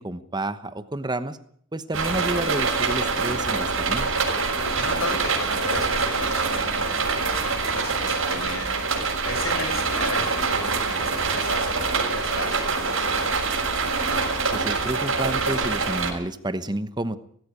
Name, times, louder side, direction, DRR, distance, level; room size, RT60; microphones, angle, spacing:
voice 1, 0.0-1.4 1.7-4.1 14.5-17.2, right 1 dB, 20° right, 12 dB, 1.0 m, -30 dB
sound 1, 1.9-16.1, right 4 dB, 70° right, 6.5 m, -25 dB
voice 2, 4.8-8.8 9.2-13.3, left 2 dB, 75° left, 6 dB, 7.1 m, -35 dB
19.0 x 16.0 x 9.7 m, 0.64 s
head